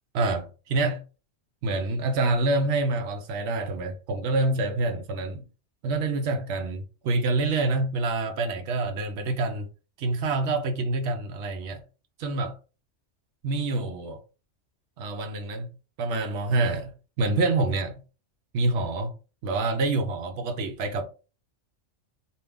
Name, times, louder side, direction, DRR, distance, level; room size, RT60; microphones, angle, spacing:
voice 1, 0.1-1.0 1.6-5.4 5.8-9.7 10.0-11.8 12.2-12.6 13.4-14.2 15.0-15.7 16.0-18.0 18.5-19.1 19.4-21.0, right 2 dB, 70° right, 0.9 m, -27 dB
2.8 x 2.3 x 3.4 m
omnidirectional pair, 1.3 m